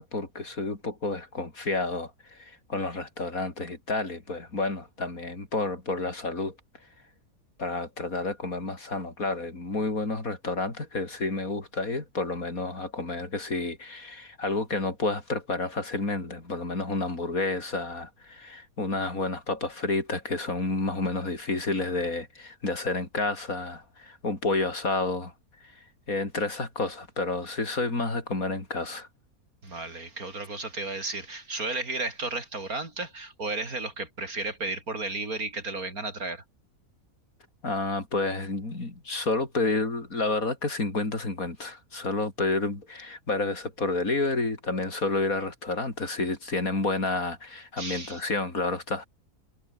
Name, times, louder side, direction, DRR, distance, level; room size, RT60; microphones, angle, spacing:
voice 1, 0.0-6.5 7.6-25.3 25.6-25.7 26.1-29.1 37.6-49.1, left 3 dB, 65° left, 5.1 m, -30 dB
voice 2, 29.6-36.4 47.8-48.3, right 3 dB, 65° right, 5.4 m, -33 dB
omnidirectional pair, 1.6 m